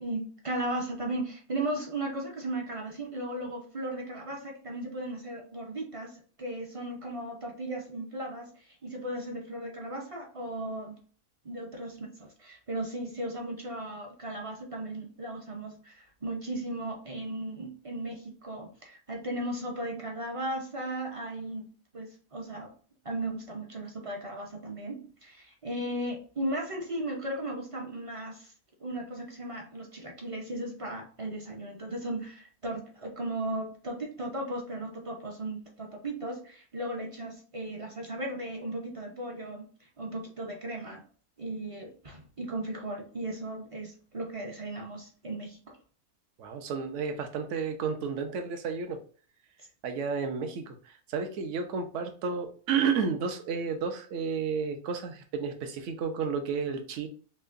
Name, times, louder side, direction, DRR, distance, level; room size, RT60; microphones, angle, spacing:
voice 1, 0.0-11.0 11.4-22.7 23.0-28.5 28.8-39.7 40.0-41.0 41.4-45.6, right 1 dB, 40° right, 1 dB, 0.5 m, -36 dB
voice 2, 46.4-49.0 49.8-57.1, right 5 dB, 60° right, 6 dB, 0.9 m, -32 dB
5.6 x 2.2 x 2.5 m, 0.43 s
omnidirectional pair, 1.6 m